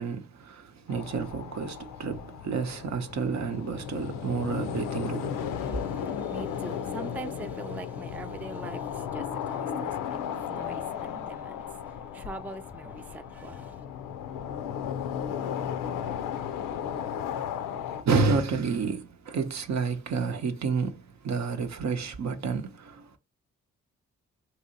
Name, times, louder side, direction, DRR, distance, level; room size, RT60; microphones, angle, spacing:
voice 1, 0.0-5.8 17.9-23.2, right 4 dB, 60° right, 0.7 m, -30 dB
sound 1, 0.9-18.0, left 8 dB, 85° left, 0.5 m, -35 dB
voice 2, 5.4-13.8, right 2 dB, 5° right, 0.3 m, -43 dB
2.9 x 2.7 x 2.7 m
supercardioid pair, 40°, 32 cm